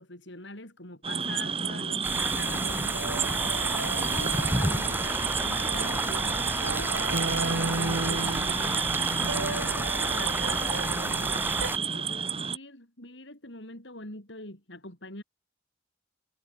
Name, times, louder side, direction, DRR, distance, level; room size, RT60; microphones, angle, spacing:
voice 1, 0.0-3.3 3.7-7.0 7.4-15.2, left 2 dB, 65° left, 6.8 m, -43 dB
sound 1, 1.0-12.6, right 6 dB, 30° right, 2.3 m, -31 dB
sound 2, 2.0-11.8, right 2 dB, 10° right, 1.9 m, -31 dB
sound 3, 2.1-11.7, right 2 dB, 85° right, 2.0 m, -36 dB
head